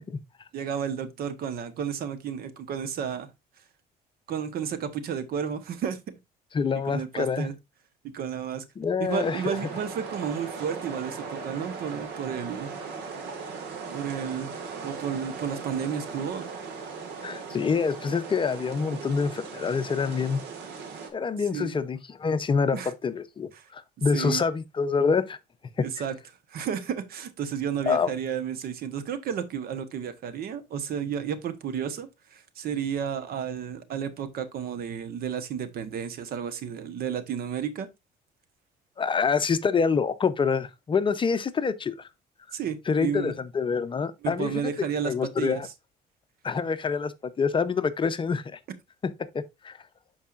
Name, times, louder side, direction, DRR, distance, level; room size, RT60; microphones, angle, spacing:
voice 1, 0.5-3.3 4.3-6.0 6.8-7.5 8.1-8.6 9.0-12.7 13.9-14.5 14.8-16.5 21.5-21.7 22.7-22.9 23.6-23.7 24.1-24.4 25.8-26.1 26.5-37.9 42.5-43.3 44.2-45.6, right 8 dB, 65° right, 1.1 m, -32 dB
voice 2, 6.5-7.5 8.8-9.6 17.2-20.4 21.1-25.4 25.8-25.9 27.8-28.1 39.0-42.1 42.9-44.7 45.0-45.7 46.4-48.6 49.0-49.8, left 5 dB, 30° left, 0.7 m, -26 dB
sound 1, 9.1-21.1, right 5 dB, 85° right, 1.8 m, -38 dB
11.5 x 4.7 x 2.5 m
cardioid pair, 110°, 17 cm